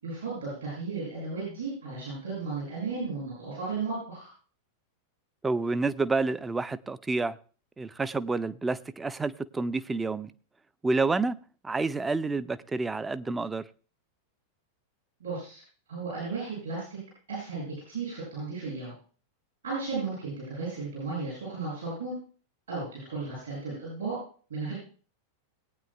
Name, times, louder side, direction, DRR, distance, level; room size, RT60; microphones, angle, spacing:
voice 1, 0.0-4.3 15.2-15.6 15.9-17.0 17.3-18.9 19.6-22.1 22.7-24.1 24.5-24.7, right 4 dB, 70° right, -6 dB, 6.8 m, -34 dB
voice 2, 5.4-7.4 7.8-10.3 10.8-11.4 11.6-13.6, right 3 dB, 10° right, 15 dB, 0.4 m, -29 dB
20.0 x 9.0 x 2.3 m, 0.40 s
figure-of-eight pair, 90°, 0 cm